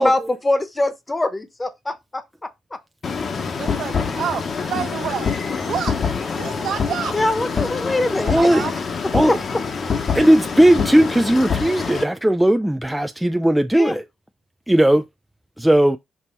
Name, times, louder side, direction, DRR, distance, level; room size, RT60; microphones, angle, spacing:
voice 1, 0.0-2.2 7.1-8.7 9.3-9.4 13.7-14.0, left 2 dB, 20° left, 1.0 m, -23 dB
sound 1, 3.0-12.0, left 5 dB, 45° left, 1.1 m, -25 dB
voice 2, 3.6-5.3 5.6-6.1 6.4-7.2 7.5-7.6 8.2-8.7, right 8 dB, 70° right, 1.3 m, -28 dB
voice 3, 8.3-8.6 9.1-9.4 10.1-14.0 14.7-15.0 15.6-16.0, right 1 dB, 5° right, 0.4 m, -16 dB
6.1 x 2.9 x 5.3 m
cardioid pair, 90°, 0 cm